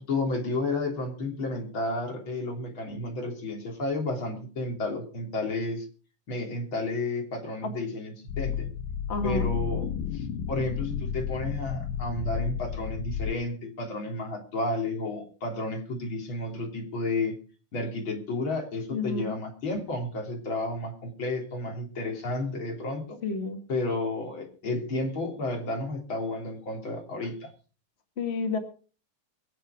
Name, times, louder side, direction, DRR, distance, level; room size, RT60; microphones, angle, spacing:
voice 1, 0.0-5.9 6.3-8.7 9.2-17.4 17.7-23.2 23.7-27.5, left 2 dB, 35° left, 2 dB, 3.7 m, -32 dB
sound 1, 8.3-13.3, left 8 dB, 85° left, 2.7 m, -32 dB
voice 2, 9.1-9.5 18.9-19.3 23.2-23.6 28.2-28.6, left 4 dB, 60° left, 6 dB, 0.6 m, -30 dB
23.5 x 7.9 x 5.0 m, 0.38 s
omnidirectional pair, 4.1 m